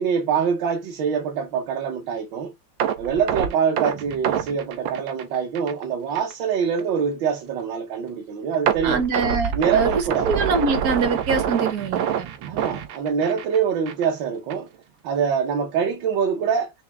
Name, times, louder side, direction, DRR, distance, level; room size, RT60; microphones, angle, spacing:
voice 1, 0.0-2.5 3.0-9.0 9.5-10.3 12.5-14.7 15.0-16.7, right 7 dB, 75° right, 1.5 m, -24 dB
sound 1, 2.8-5.8 6.1-6.3 6.8-6.9 8.7-13.6 13.9-14.1 14.5-14.6, right 9 dB, 90° right, 1.5 m, -26 dB
voice 2, 8.8-12.3, right 4 dB, 60° right, 1.2 m, -24 dB
5.9 x 2.0 x 3.4 m
omnidirectional pair, 2.1 m